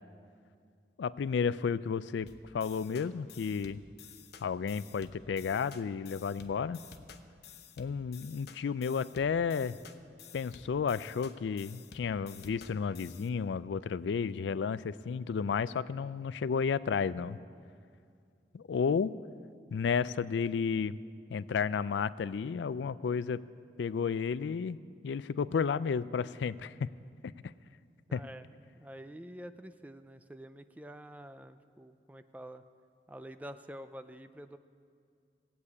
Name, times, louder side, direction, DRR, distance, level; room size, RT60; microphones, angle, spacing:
voice 1, 1.0-2.3 2.5-3.8 4.4-6.8 7.8-9.7 10.3-17.4 18.5-19.1 19.7-21.0 21.3-23.4 23.8-24.8 25.0-26.9 28.1-28.2, left 6 dB, 90° left, 17 dB, 0.4 m, -32 dB
sound 1, 2.3-13.3, left 6 dB, 65° left, 0.7 m, -53 dB
voice 2, 28.1-28.5 28.7-32.6 33.1-34.6, equal, 10° right, 10 dB, 0.4 m, -47 dB
16.5 x 8.2 x 8.4 m, 2.3 s
head